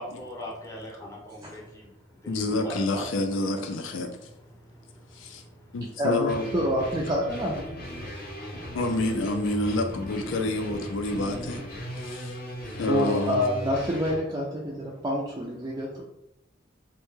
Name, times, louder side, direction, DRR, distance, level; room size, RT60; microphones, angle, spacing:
voice 1, 0.0-1.9 2.2-3.0 3.5-3.6 4.6-5.8 8.0-8.6, equal, 15° left, -3 dB, 0.6 m, -41 dB
voice 2, 2.3-4.3 5.1-5.4 5.7-6.5 8.7-11.6 12.0-12.4 12.8-13.5, left 2 dB, 80° left, 5 dB, 0.4 m, -28 dB
voice 3, 6.0-7.7 12.9-15.9, equal, 20° right, -4 dB, 0.3 m, -27 dB
sound 1, 6.3-14.2, equal, 50° left, 0.7 m, -38 dB
2.2 x 2.1 x 3.0 m, 0.82 s
head